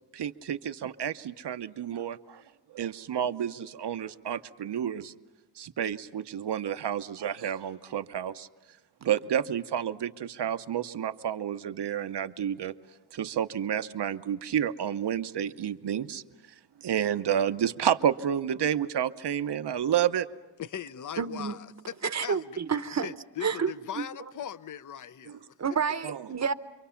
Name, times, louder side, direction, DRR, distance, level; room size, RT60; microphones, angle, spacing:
voice 1, 0.1-2.4 2.7-5.1 5.6-8.5 9.0-12.7 13.1-16.2 16.8-20.3 25.3-25.4 26.0-26.2, right 9 dB, 70° right, 0.8 m, -30 dB
voice 2, 20.6-22.6 23.0-25.5, left 9 dB, 45° left, 0.6 m, -39 dB
voice 3, 21.2-21.6 22.0-23.1 23.4-24.0 25.6-26.5, right 6 dB, 40° right, 0.8 m, -29 dB
28.0 x 23.5 x 5.8 m
wide cardioid pair, 85°, 42 cm